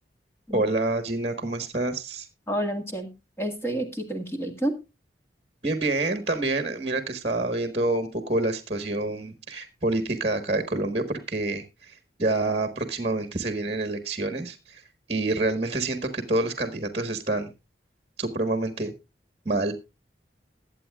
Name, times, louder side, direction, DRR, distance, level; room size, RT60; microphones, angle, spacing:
voice 1, 0.5-2.3 5.6-14.8 15.1-17.5 18.2-18.9 19.4-19.7, right 2 dB, 35° right, 9 dB, 1.4 m, -27 dB
voice 2, 2.5-3.1 3.4-4.8, right 1 dB, 15° left, 4 dB, 1.9 m, -29 dB
20.5 x 8.3 x 2.4 m, 0.27 s
head